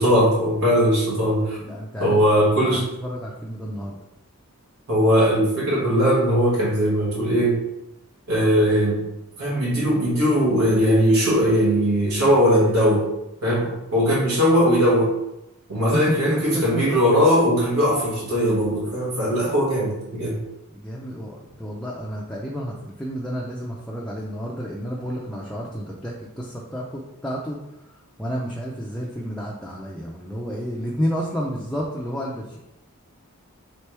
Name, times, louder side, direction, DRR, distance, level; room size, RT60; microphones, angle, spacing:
voice 1, 0.0-1.6 2.0-2.9 4.9-7.6 8.3-9.0 9.4-13.1 13.4-15.1 15.7-20.4, equal, 85° right, -7 dB, 1.4 m, -19 dB
voice 2, 1.5-4.0 15.8-17.0 20.7-27.6 28.2-32.6, equal, 5° left, -4 dB, 0.4 m, -31 dB
3.4 x 3.4 x 4.4 m, 0.89 s
head